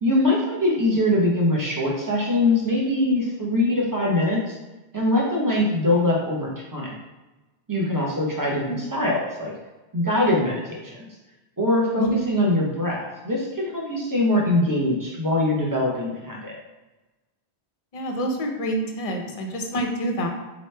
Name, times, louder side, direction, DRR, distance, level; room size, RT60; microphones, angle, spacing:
voice 1, 0.0-4.5 4.9-6.9 7.7-9.5 9.9-11.0 11.6-16.6, left 1 dB, 20° right, -3 dB, 0.7 m, -23 dB
voice 2, 17.9-20.3, right 1 dB, 45° left, 2 dB, 0.5 m, -27 dB
4.1 x 3.0 x 3.3 m, 1.1 s
omnidirectional pair, 1.1 m